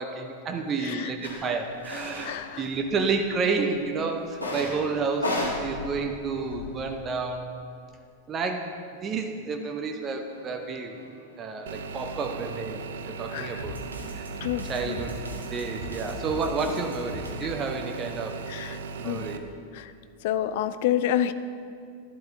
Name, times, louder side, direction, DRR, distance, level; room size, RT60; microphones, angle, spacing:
voice 1, 0.0-7.5 8.3-11.0 11.4-13.7 14.1-14.3 14.7-15.2 15.5-18.5 18.9-19.4, right 4 dB, 25° right, 5 dB, 0.7 m, -30 dB
voice 2, 0.8-1.1 2.2-2.6 13.3-13.6 14.4-15.0 18.5-19.3 19.7-19.9 20.2-21.3, left 11 dB, 50° left, 12 dB, 0.4 m, -29 dB
sound 1, 1.2-1.3 1.8-2.3 2.6-3.4 4.3-4.8 5.1-6.9, left 1 dB, 90° left, 2.1 m, -32 dB
sound 2, 10.0-17.3, equal, 75° right, 1.1 m, -42 dB
sound 3, 11.7-19.4, right 5 dB, 60° right, 0.5 m, -38 dB
11.5 x 11.5 x 2.6 m, 2.4 s
figure-of-eight pair, 90°, 0 cm